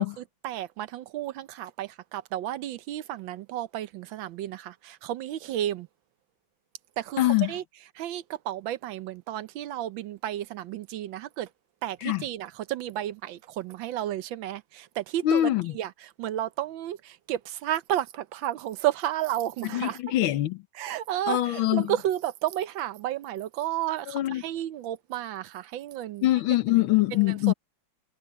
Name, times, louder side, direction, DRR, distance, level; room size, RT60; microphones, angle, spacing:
voice 1, 0.0-5.9 7.0-7.2 7.5-7.6 7.9-11.5 11.8-20.0 20.7-26.3 27.1-27.5, right 12 dB, 75° right, 1.4 m, -32 dB
voice 2, 7.2-7.5 12.0-12.2 15.2-15.8 19.7-20.6 21.3-21.9 24.1-24.4 26.2-27.5, left 15 dB, 85° left, 1.7 m, -24 dB
omnidirectional pair, 2.2 m